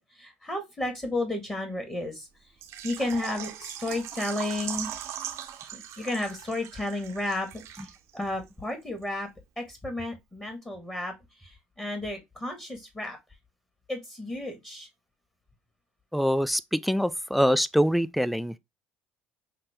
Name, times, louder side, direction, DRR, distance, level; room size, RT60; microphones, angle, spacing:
voice 1, 0.2-2.3 2.8-4.9 5.7-7.6 8.1-9.3 9.6-11.1 11.4-13.2 13.9-14.9, left 2 dB, 15° left, 1.7 m, -32 dB
Water / Liquid, 2.6-8.2 8.5-8.6 9.0-9.1, right 10 dB, 60° right, 0.8 m, -39 dB
voice 2, 16.1-18.6, equal, ahead, 0.4 m, -24 dB
5.7 x 2.1 x 3.4 m
hypercardioid pair, 60°, 5 cm